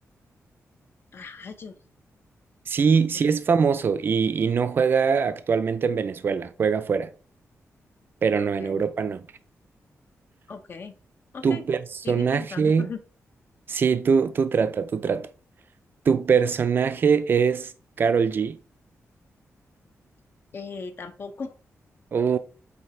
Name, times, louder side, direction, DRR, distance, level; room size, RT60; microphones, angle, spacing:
voice 1, 1.1-1.7 3.1-3.3 8.4-8.8 10.5-10.9 11.3-11.6 12.0-13.0 20.5-21.5, left 4 dB, 45° left, 0.8 m, -38 dB
voice 2, 2.7-7.1 8.2-9.2 11.4-11.8 12.1-12.9 13.7-15.3 16.1-17.7 18.0-18.6 22.1-22.4, right 6 dB, 40° right, 0.4 m, -22 dB
7.9 x 2.8 x 4.4 m
wide cardioid pair, 175°, 5 cm